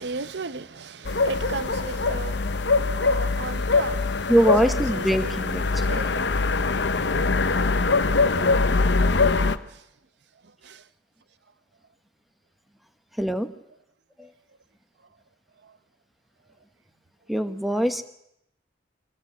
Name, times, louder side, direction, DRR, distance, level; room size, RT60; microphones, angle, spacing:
voice 1, 0.0-5.4 5.8-6.6 6.9-7.8 9.7-9.8 10.4-10.8 15.6-15.7, right 3 dB, 65° right, 0.8 m, -37 dB
sound 1, 1.0-9.6, left 3 dB, 65° left, 0.9 m, -23 dB
voice 2, 4.3-6.0 13.2-13.5 14.2-14.3 17.3-18.0, right 1 dB, ahead, 1.1 m, -23 dB
24.0 x 15.5 x 8.1 m
head